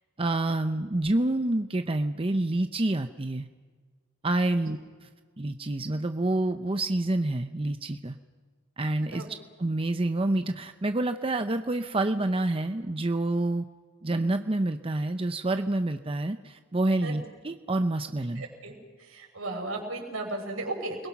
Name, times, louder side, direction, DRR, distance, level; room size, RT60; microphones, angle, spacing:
voice 1, 0.2-3.5 4.2-5.1 5.4-8.2 8.8-9.2 9.6-13.7 14.0-18.4, right 2 dB, 25° right, 8 dB, 0.7 m, -28 dB
voice 2, 18.4-21.0, right 2 dB, 80° right, 2 dB, 5.7 m, -36 dB
29.0 x 21.5 x 6.0 m, 1.5 s
head